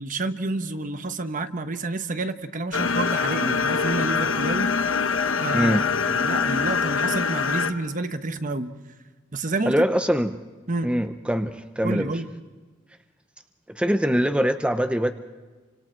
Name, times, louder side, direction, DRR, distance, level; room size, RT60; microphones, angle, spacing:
voice 1, 0.0-4.8 5.4-5.7 6.1-8.7 9.3-9.7 10.7-10.9 11.8-12.3, right 2 dB, 45° right, 9 dB, 1.1 m, -29 dB
sound 1, 2.7-7.7, left 5 dB, 85° left, 1.3 m, -24 dB
voice 2, 5.5-5.9 9.7-10.4 10.8-12.1 13.7-15.1, equal, 5° right, 8 dB, 0.7 m, -23 dB
28.5 x 25.5 x 4.5 m, 1.3 s
head